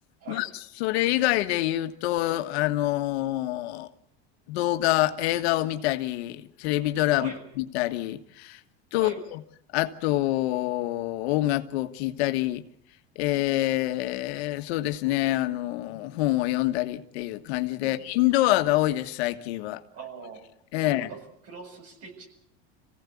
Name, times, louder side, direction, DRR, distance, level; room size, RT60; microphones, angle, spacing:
voice 1, 0.3-3.9 4.5-8.6 8.9-9.4 9.7-12.6 13.1-19.8 20.7-21.1, left 16 dB, 80° left, 1.6 m, -26 dB
voice 2, 19.9-20.4 20.8-22.3, right 5 dB, 50° right, 7.3 m, -42 dB
25.5 x 16.5 x 8.5 m
supercardioid pair, 125°, 32 cm